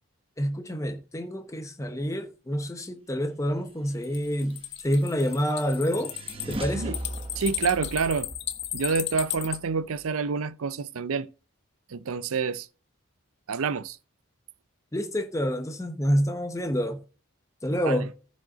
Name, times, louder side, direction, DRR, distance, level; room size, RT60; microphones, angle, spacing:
voice 1, 0.4-6.1 6.5-7.0 14.9-17.0 17.6-18.1, equal, 15° left, 0.8 m, -28 dB
sound 1, 4.0-9.6, left 13 dB, 55° left, 0.8 m, -34 dB
sound 2, 4.4-10.0, right 1 dB, 25° right, 0.9 m, -40 dB
voice 2, 7.4-8.3 8.7-11.3 11.9-12.7 13.5-14.0 17.8-18.0, right 5 dB, 75° right, 0.5 m, -28 dB
14.5 x 5.3 x 3.9 m
head